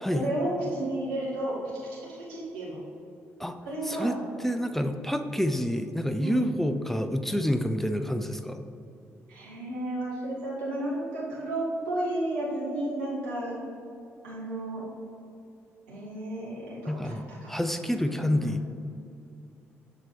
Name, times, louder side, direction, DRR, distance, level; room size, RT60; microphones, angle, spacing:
voice 1, 0.1-1.5 2.1-2.8 3.6-4.1 6.2-6.5 9.3-13.6 14.2-14.8 15.9-17.1 17.4-18.6, right 1 dB, 75° right, -7 dB, 1.7 m, -32 dB
voice 2, 3.9-8.6 16.9-18.9, equal, 5° left, 8 dB, 0.5 m, -28 dB
12.5 x 4.5 x 3.3 m, 2.6 s
figure-of-eight pair, 40°, 7 cm